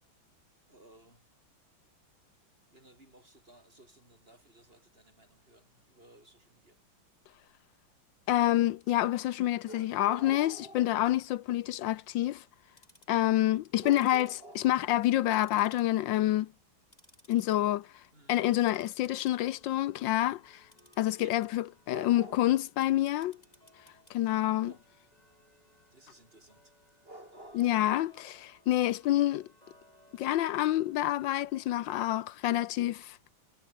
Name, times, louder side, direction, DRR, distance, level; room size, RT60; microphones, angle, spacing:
voice 1, 0.7-1.3 2.7-6.8 9.6-11.1 13.8-14.8 18.1-18.4 21.0-21.4 21.9-22.7 24.3-24.9 25.5-26.7 27.0-28.2, right 1 dB, 25° right, 8.4 m, -51 dB
voice 2, 8.3-12.4 13.1-14.3 14.6-16.5 17.3-17.9 18.3-20.6 21.0-23.4 24.1-24.7 27.6-29.5 30.1-33.2, left 14 dB, 75° left, 1.3 m, -27 dB
Tick-tock, 12.6-13.2 13.8-15.1 15.3-16.2 16.5-17.6 17.9-18.2 18.6-32.0, left 1 dB, 20° left, 7.4 m, -63 dB
omnidirectional pair, 2.2 m